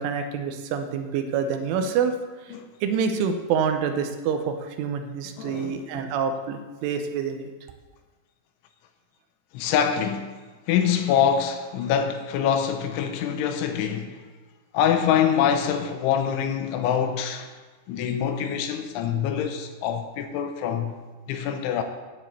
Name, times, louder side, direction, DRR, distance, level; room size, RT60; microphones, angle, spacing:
voice 1, 0.0-2.2 2.4-2.5 2.8-7.5, right 6 dB, 85° right, 3.3 m, -27 dB
voice 2, 5.4-5.8 9.5-10.4 10.7-14.3 14.7-17.5 17.9-21.0 21.3-21.8, left 8 dB, 85° left, 3.1 m, -25 dB
10.0 x 7.2 x 8.2 m
omnidirectional pair, 5.6 m